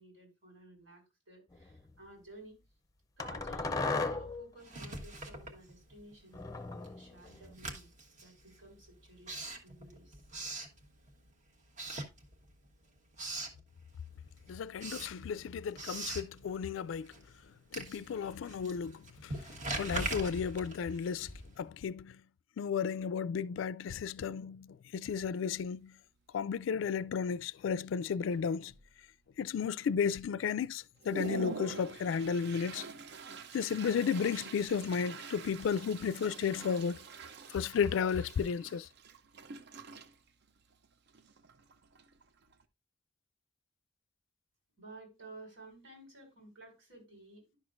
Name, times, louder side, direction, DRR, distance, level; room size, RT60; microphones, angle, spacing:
voice 1, 0.0-2.6 3.2-7.9 8.2-10.3 44.8-47.6, right 1 dB, 90° right, 4.3 m, -54 dB
sound 1, 1.5-1.8 3.2-4.5 6.3-7.5, left 3 dB, 20° left, 0.6 m, -36 dB
Writing, 4.6-6.2 6.5-11.3 11.7-12.7 12.9-13.6 14.0-21.7, right 2 dB, 40° right, 1.2 m, -43 dB
voice 2, 14.5-17.1 17.7-19.4 19.7-22.2 22.6-26.0 26.3-28.7 29.4-32.9 33.5-37.0 37.5-38.9, left 6 dB, 75° left, 0.3 m, -33 dB
Toilet flush, 25.7-25.8 26.3-26.6 26.9-27.4 27.9-28.0 28.3-29.1 29.5-29.6 30.2-30.3 30.7-42.6, right 4 dB, 60° right, 0.6 m, -46 dB
11.0 x 6.1 x 2.5 m
head